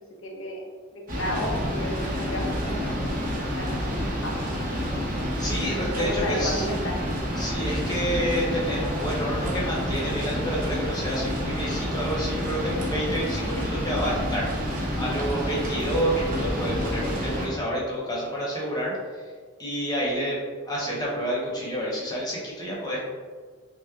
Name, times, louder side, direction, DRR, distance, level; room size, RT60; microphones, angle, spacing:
voice 1, 0.2-0.6 0.9-3.2 3.6-4.4 6.0-7.0, equal, 80° left, 0 dB, 0.8 m, -33 dB
sound 1, 1.1-17.5, equal, 45° right, 0.8 m, -28 dB
voice 2, 5.4-6.7 7.4-19.2 19.6-20.4 20.7-23.0, equal, 20° left, -5 dB, 1.0 m, -29 dB
5.7 x 2.1 x 2.4 m, 1.5 s
head